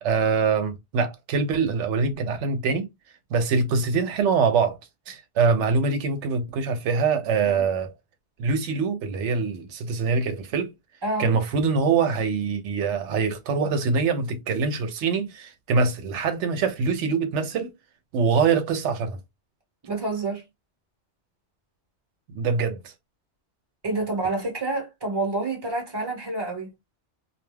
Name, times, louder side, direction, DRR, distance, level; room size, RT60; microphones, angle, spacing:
voice 1, 0.0-2.9 3.3-4.8 5.1-7.9 8.4-10.7 11.2-17.7 18.1-19.2 22.3-22.9, right 5 dB, 85° right, 0.9 m, -24 dB
voice 2, 19.8-20.4 23.8-26.7, right 2 dB, 20° right, 1.0 m, -28 dB
2.3 x 2.2 x 3.2 m
omnidirectional pair, 1.2 m